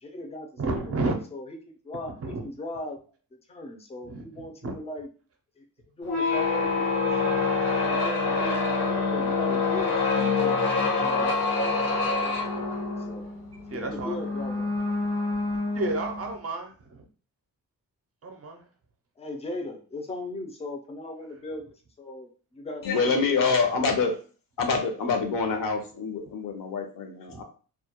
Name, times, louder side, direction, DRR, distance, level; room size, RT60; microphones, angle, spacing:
voice 1, 0.0-1.6 1.8-3.0 3.5-5.1 5.6-5.7 6.0-7.5 7.8-11.8 12.2-13.2 13.7-14.7 19.2-23.4, left 1 dB, 20° left, 3 dB, 0.3 m, -39 dB
voice 2, 0.6-1.2 2.2-2.4 4.1-4.2 4.6-4.7 13.7-14.1 15.7-17.0 18.2-18.6 27.3-27.4, right 2 dB, 40° right, 4 dB, 0.4 m, -31 dB
sound 1, 6.0-16.4, left 4 dB, 80° left, 1.2 m, -26 dB
voice 3, 22.8-24.1 24.6-27.4, left 4 dB, 65° left, 5 dB, 0.6 m, -26 dB
2.2 x 2.1 x 2.8 m, 0.38 s
wide cardioid pair, 155°, 36 cm